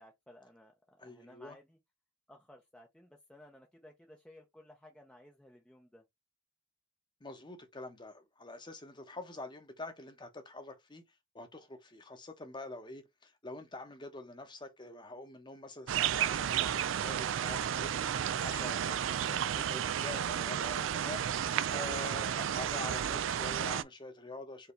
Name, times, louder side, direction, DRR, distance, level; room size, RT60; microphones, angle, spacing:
voice 1, 0.0-1.8 2.3-6.0 22.3-22.7, left 1 dB, 5° left, 0.6 m, -57 dB
voice 2, 1.0-1.6 7.2-11.0 11.3-24.7, left 2 dB, 25° left, 0.9 m, -46 dB
sound 1, 15.9-23.8, right 9 dB, 65° right, 0.4 m, -32 dB
4.6 x 2.8 x 3.1 m
head